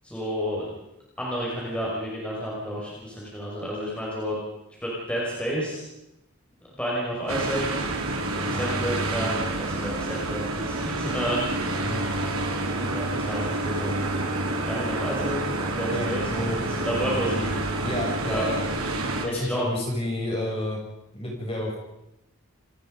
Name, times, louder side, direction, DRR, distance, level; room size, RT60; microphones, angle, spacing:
voice 1, 0.0-0.7 1.2-4.4 4.8-5.9 6.8-7.8 8.4-11.4 11.7-11.8 12.8-13.9 14.7-15.4 15.8-17.5 18.2-18.5 19.3-19.7, equal, 5° left, -5 dB, 5.6 m, -30 dB
sound 1, 7.3-19.3, right 2 dB, 80° right, 3.6 m, -28 dB
voice 2, 17.8-18.6 19.2-20.8 21.1-21.8, left 1 dB, 25° left, -2 dB, 7.1 m, -29 dB
28.0 x 20.0 x 5.3 m, 0.89 s
head